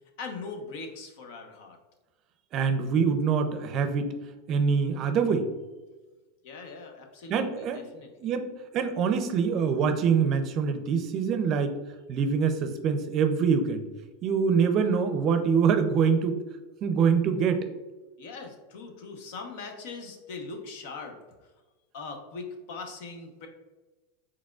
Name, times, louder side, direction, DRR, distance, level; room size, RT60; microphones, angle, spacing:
voice 1, 0.2-1.8 6.4-8.1 18.2-21.2 21.9-23.5, left 4 dB, 70° left, 4 dB, 0.9 m, -40 dB
voice 2, 2.5-4.1 4.5-5.5 7.3-7.8 8.2-8.5 8.7-11.7 12.1-13.8 14.2-16.4 16.8-17.7, right 6 dB, 40° right, 8 dB, 0.5 m, -24 dB
4.8 x 4.2 x 2.4 m, 1.2 s
supercardioid pair, 130°, 0 cm